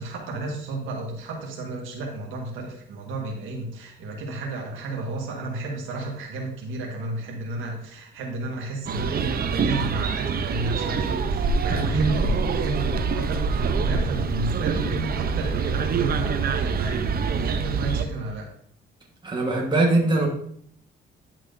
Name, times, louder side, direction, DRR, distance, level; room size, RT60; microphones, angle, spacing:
voice 1, 0.0-18.5, right 2 dB, 90° right, 0 dB, 1.5 m, -32 dB
sound 1, 8.9-18.0, right 5 dB, 50° right, 0.7 m, -25 dB
voice 2, 11.7-12.2 19.2-20.3, right 2 dB, 25° right, -1 dB, 1.4 m, -22 dB
10.5 x 6.1 x 2.6 m, 0.65 s
cardioid pair, 90°, 20 cm